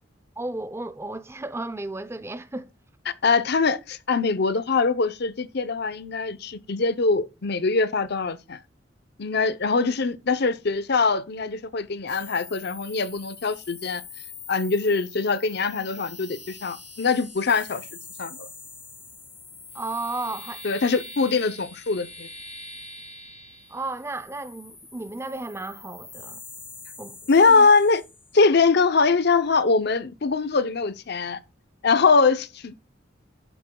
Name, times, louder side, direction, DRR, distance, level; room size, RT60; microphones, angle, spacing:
voice 1, 0.4-2.7 19.7-20.6 23.7-26.4 27.0-27.7, right 2 dB, 15° right, 0.5 m, -34 dB
voice 2, 3.2-8.6 9.2-14.0 14.5-17.9 18.2-18.5 20.6-22.3 27.3-28.0 28.3-31.4 31.8-32.8, left 4 dB, 60° left, 0.7 m, -22 dB
sound 1, 12.1-28.4, left 3 dB, 45° left, 5.3 m, -43 dB
11.0 x 8.6 x 2.3 m
head